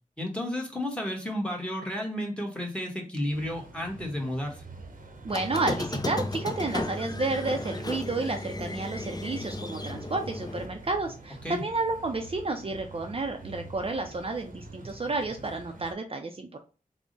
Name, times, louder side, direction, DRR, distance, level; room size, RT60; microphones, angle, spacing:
voice 1, 0.2-4.6 11.4-11.6, left 1 dB, 5° left, 1 dB, 1.1 m, -32 dB
sound 1, 3.3-15.9, right 2 dB, 75° right, 0.7 m, -46 dB
voice 2, 5.2-16.6, right 3 dB, 40° right, 4 dB, 0.4 m, -31 dB
Squeak, 5.3-10.7, left 2 dB, 25° left, 0.4 m, -34 dB
3.5 x 2.1 x 3.8 m, 0.34 s
wide cardioid pair, 70°, 15 cm